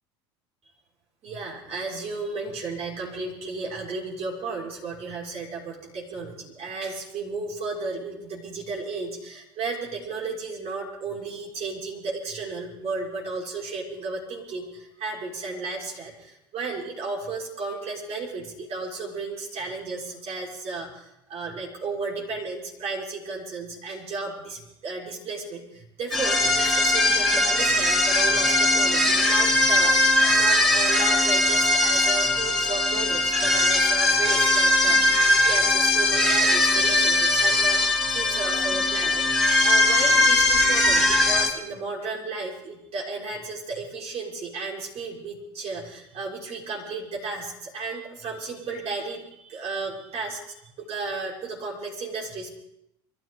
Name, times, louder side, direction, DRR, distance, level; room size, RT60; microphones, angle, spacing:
voice 1, 1.2-39.2 39.6-52.5, right 3 dB, 45° right, -3 dB, 6.1 m, -34 dB
sound 1, 26.1-41.5, left 2 dB, 5° right, 3.8 m, -20 dB
24.5 x 14.5 x 4.0 m, 0.82 s
hypercardioid pair, 75°, 14 cm